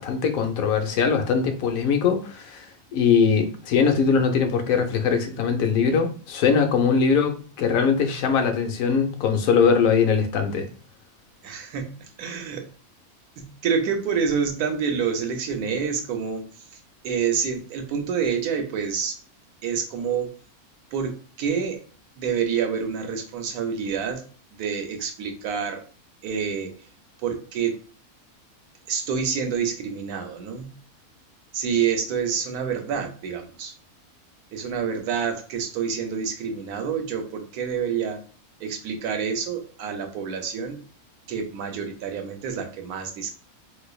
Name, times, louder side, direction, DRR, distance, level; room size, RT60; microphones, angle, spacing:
voice 1, 0.0-2.7 2.9-10.7, left 6 dB, 75° left, 1.0 m, -21 dB
voice 2, 11.4-12.7 13.4-16.5 17.0-19.2 19.6-20.3 20.9-21.8 22.2-24.2 24.6-25.8 26.2-26.7 27.2-27.8 28.9-30.7 31.5-33.7 34.5-38.2 38.6-40.8 41.3-43.3, right 6 dB, 85° right, 1.2 m, -27 dB
4.0 x 2.5 x 2.3 m
omnidirectional pair, 1.6 m